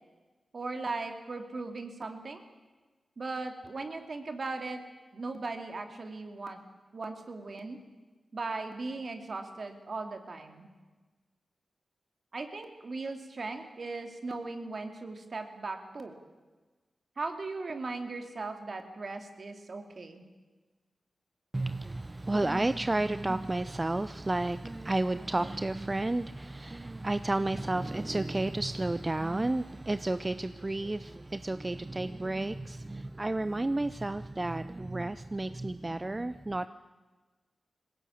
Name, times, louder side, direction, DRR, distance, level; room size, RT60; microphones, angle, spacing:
voice 1, 0.5-2.4 3.2-4.8 5.1-6.6 6.9-7.8 8.3-10.7 12.3-16.1 17.2-20.2, right 3 dB, 60° right, 6 dB, 2.6 m, -38 dB
voice 2, 21.5-36.7, right 2 dB, 30° right, 12 dB, 0.7 m, -31 dB
20.0 x 17.0 x 8.7 m, 1.3 s
cardioid pair, 40°, 0 cm